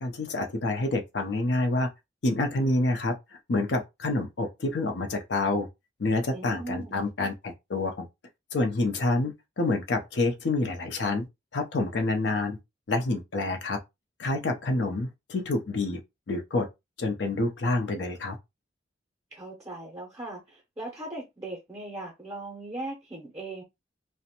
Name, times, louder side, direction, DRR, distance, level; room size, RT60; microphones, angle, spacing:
voice 1, 0.0-1.9 2.2-3.1 3.5-5.7 6.0-8.1 8.5-11.2 11.5-12.6 12.9-13.8 14.2-16.0 16.3-16.7 17.0-18.4, left 2 dB, 70° left, 0.6 m, -27 dB
voice 2, 6.3-6.9 19.3-23.6, right 2 dB, 15° right, 0.6 m, -39 dB
2.5 x 2.1 x 2.8 m
head